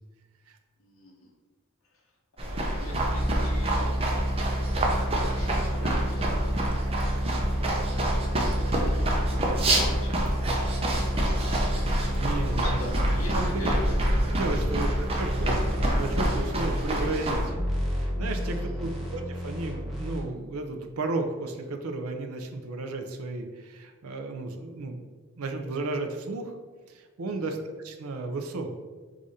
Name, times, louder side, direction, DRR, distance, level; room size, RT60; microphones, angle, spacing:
voice 1, 0.8-1.3 1.9-2.0 2.4-4.1 5.3-6.3 7.5-10.3 11.1-11.5 12.5-14.0 14.4-14.8 18.4-19.0 27.3-27.5, left 1 dB, 70° left, -2 dB, 0.8 m, -44 dB
sound 1, 2.4-17.4, right 1 dB, 25° right, 0.6 m, -27 dB
sound 2, 2.9-16.5, right 1 dB, 45° right, 1.0 m, -30 dB
voice 2, 12.1-12.9 13.3-13.5 14.3-17.6 17.9-25.0 25.4-26.5 26.9-28.7, right 2 dB, 85° right, 5 dB, 0.5 m, -33 dB
sound 3, 15.4-20.2, equal, ahead, 1.0 m, -32 dB
4.9 x 2.5 x 4.1 m, 1.4 s
head